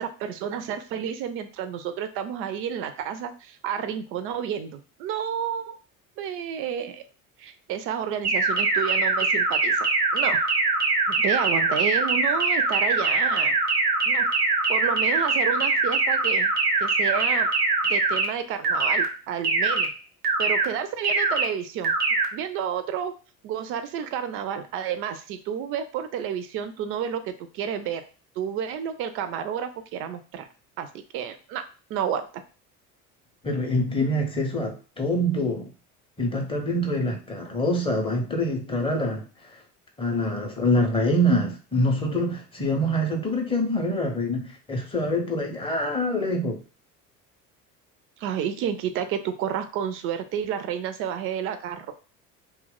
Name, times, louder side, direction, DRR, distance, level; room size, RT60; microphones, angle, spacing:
voice 1, 0.0-5.8 6.2-7.0 7.4-9.9 10.1-10.4 11.1-13.5 14.0-14.3 14.7-16.5 16.8-17.5 17.8-19.9 20.4-21.9 22.3-23.1 23.4-28.0 28.4-30.5 30.8-30.9 31.1-32.4 48.2-51.9, right 8 dB, 30° right, 10 dB, 0.4 m, -30 dB
sound 1, 8.2-18.3 18.6-19.1 19.4-19.9 20.2-20.7 21.0-21.5 21.8-22.3, right 3 dB, 85° right, 0.7 m, -22 dB
voice 2, 33.4-35.7 36.2-39.6 40.0-46.6, equal, 10° left, 2 dB, 0.6 m, -25 dB
2.8 x 2.1 x 3.7 m, 0.35 s
figure-of-eight pair, 65°, 46 cm